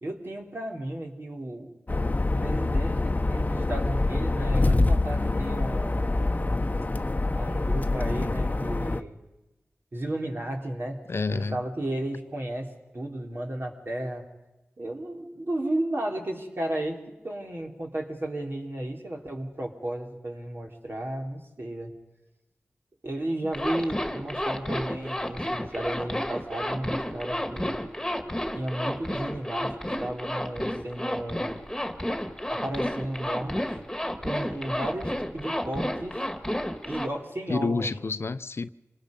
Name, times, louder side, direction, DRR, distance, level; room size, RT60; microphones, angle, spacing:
voice 1, 0.0-1.7 2.2-6.2 7.4-9.2 9.9-11.0 11.3-14.2 14.8-21.9 23.0-27.8 28.5-31.6 32.5-33.8 34.2-36.2 36.9-37.9, right 1 dB, 55° right, 3.7 m, -33 dB
sound 1, 1.9-9.0, left 2 dB, 35° left, 0.9 m, -25 dB
voice 2, 11.1-11.6 37.5-38.7, left 4 dB, 65° left, 0.7 m, -29 dB
Zipper (clothing), 23.5-37.1, left 1 dB, 10° left, 2.1 m, -31 dB
27.5 x 20.0 x 5.4 m
cardioid pair, 50°, 5 cm